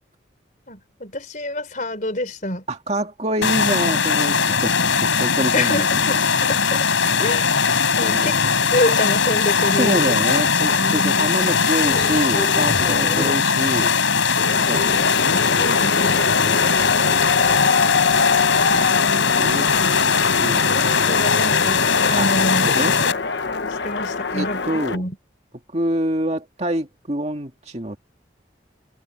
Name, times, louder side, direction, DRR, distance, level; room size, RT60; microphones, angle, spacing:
voice 1, 0.7-2.6 4.8-4.9 5.5-6.9 7.2-7.5 8.0-10.1 10.6-11.3 15.6-16.2 19.1-19.2 20.6-22.9 23.7-24.6 24.9-25.2, left 1 dB, 40° left, 3.9 m, -27 dB
voice 2, 2.7-6.0 8.0-8.5 9.8-13.9 14.6-15.0 16.4-16.7 18.5-19.7 20.4-20.8 22.2-22.3 22.6-22.9 24.3-25.0 25.7-28.0, right 1 dB, 35° right, 2.1 m, -26 dB
sound 1, 3.4-23.1, left 5 dB, 90° left, 4.9 m, -19 dB
sound 2, 9.2-9.3 9.5-9.6 9.8-9.9 10.1-10.4 10.9-11.0 11.4-13.3, left 1 dB, 20° left, 4.4 m, -31 dB
sound 3, 14.4-25.0, left 4 dB, 65° left, 1.1 m, -24 dB
head